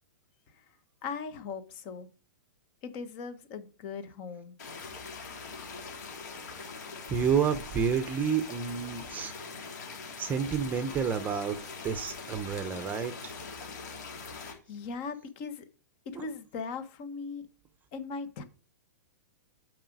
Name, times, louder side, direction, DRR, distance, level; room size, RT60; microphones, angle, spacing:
voice 1, 1.0-2.1 2.8-4.5 14.7-15.6 16.1-17.4 17.9-18.4, left 5 dB, 40° left, 1.1 m, -39 dB
sound 1, 4.6-14.5, left 4 dB, 65° left, 3.2 m, -42 dB
voice 2, 7.1-9.3 10.2-11.6 11.8-13.3 16.2-16.3, right 7 dB, 15° right, 0.7 m, -29 dB
7.7 x 5.0 x 4.7 m
hypercardioid pair, 145°, 10 cm